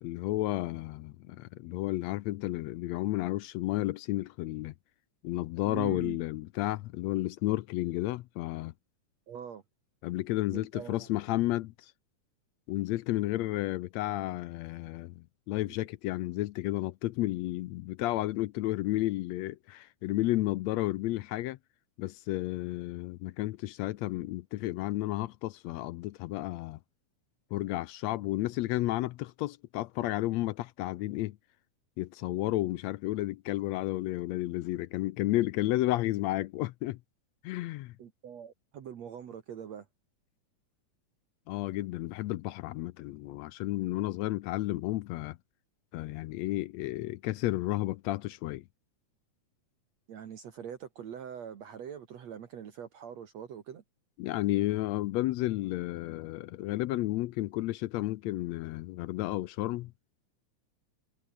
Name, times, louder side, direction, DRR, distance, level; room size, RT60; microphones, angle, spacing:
voice 1, 0.0-4.7 5.2-8.7 10.0-11.9 12.7-21.6 22.0-26.8 27.5-31.4 32.0-37.0 37.4-37.9 41.5-45.4 45.9-48.6 54.2-59.9, left 17 dB, 80° left, 1.6 m, -32 dB
voice 2, 5.6-6.2 9.3-9.6 10.5-11.1 15.7-15.8 38.0-39.9 50.1-53.8, right 8 dB, 60° right, 2.8 m, -43 dB
omnidirectional pair, 3.6 m